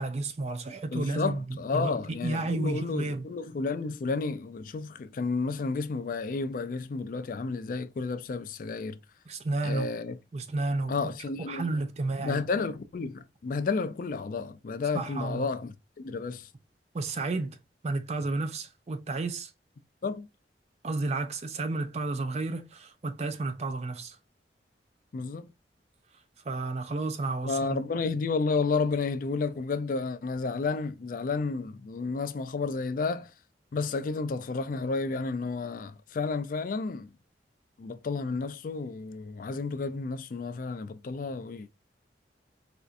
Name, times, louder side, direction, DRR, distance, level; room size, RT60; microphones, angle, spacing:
voice 1, 0.0-3.3 9.3-9.9 10.3-11.1 11.5-12.4 14.9-15.5 16.9-17.6 17.8-19.5 20.8-24.2 26.5-27.8, right 3 dB, 40° right, 0.4 m, -32 dB
voice 2, 0.9-9.0 9.6-10.2 10.9-11.6 12.2-16.5 20.0-20.3 25.1-25.4 27.5-33.3 33.7-37.1 37.8-41.7, left 4 dB, 50° left, 0.3 m, -31 dB
4.3 x 2.5 x 2.4 m
head